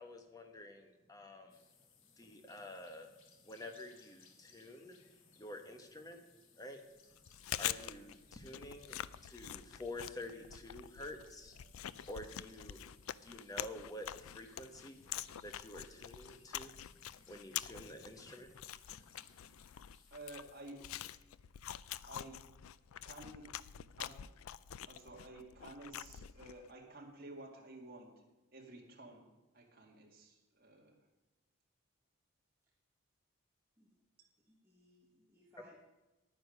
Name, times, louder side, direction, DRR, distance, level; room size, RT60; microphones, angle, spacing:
voice 1, 0.0-1.6 2.2-3.1 3.4-5.1 5.4-6.2 6.5-6.8 7.6-12.8 13.2-15.1 15.4-16.8 17.2-18.5 18.9-19.5, left 1 dB, 15° left, 5 dB, 1.1 m, -49 dB
sound 1, 1.5-20.6, left 6 dB, 75° left, 1.5 m, -66 dB
Chewing mastication, 7.2-26.7, left 11 dB, 90° left, 0.4 m, -46 dB
voice 2, 20.1-20.8 22.1-22.4 23.0-23.6 24.0-24.2 24.9-28.2 28.5-29.3 29.5-30.9, right 2 dB, 45° right, -1 dB, 2.1 m, -52 dB
voice 3, 34.4-35.8, equal, 10° right, -5 dB, 1.5 m, -66 dB
10.5 x 9.6 x 5.3 m, 1.1 s
head